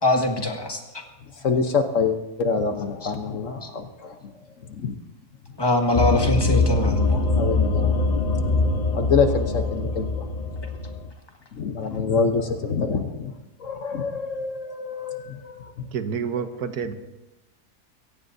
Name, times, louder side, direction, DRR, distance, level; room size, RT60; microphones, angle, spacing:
voice 1, 0.0-0.8 5.6-7.2, left 1 dB, 15° left, 1 dB, 1.8 m, -22 dB
voice 2, 1.2-5.0 5.5-5.6 7.2-10.3 11.5-13.3 13.6-15.9, left 5 dB, 55° left, 6 dB, 1.2 m, -26 dB
sound 1, 5.9-11.1, left 3 dB, 35° left, 0.7 m, -23 dB
voice 3, 15.9-17.0, right 6 dB, 75° right, 9 dB, 1.4 m, -28 dB
23.0 x 17.5 x 2.7 m, 1.0 s
omnidirectional pair, 1.7 m